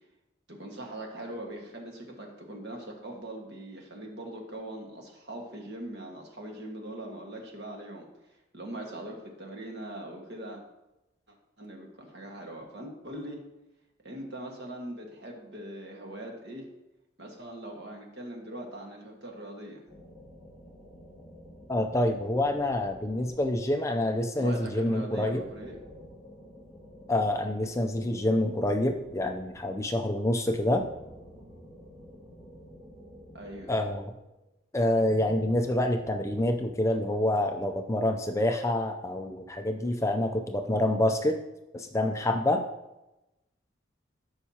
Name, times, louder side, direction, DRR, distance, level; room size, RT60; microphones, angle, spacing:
voice 1, 0.5-8.1 8.5-10.6 11.3-13.4 14.0-16.6 17.2-19.8 24.4-25.8 33.3-33.7, right 1 dB, 55° right, 0 dB, 1.6 m, -41 dB
sound 1, 19.9-24.1 25.2-29.8 30.4-34.4 35.0-36.7, equal, 15° right, 2.9 m, -50 dB
voice 2, 21.7-25.4 27.1-30.8 33.7-34.1 34.7-41.4 41.7-42.6, left 1 dB, 15° left, 5 dB, 0.4 m, -27 dB
12.5 x 5.7 x 2.8 m, 0.95 s
head